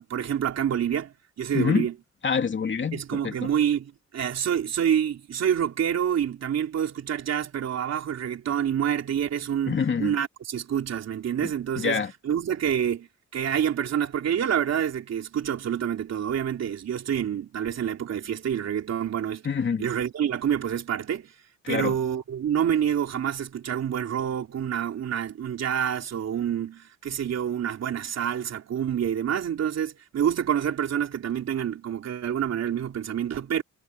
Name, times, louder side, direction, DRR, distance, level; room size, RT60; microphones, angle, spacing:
voice 1, 0.0-1.9 2.9-13.1 13.3-19.4 19.8-21.3 21.7-33.6, right 9 dB, 60° right, 3.6 m, -27 dB
voice 2, 1.5-1.9 2.2-3.5 9.7-10.2 11.4-11.5 11.8-12.1 19.4-19.9 21.6-21.9, left 6 dB, 40° left, 2.7 m, -26 dB
cardioid pair, 90°, 30 cm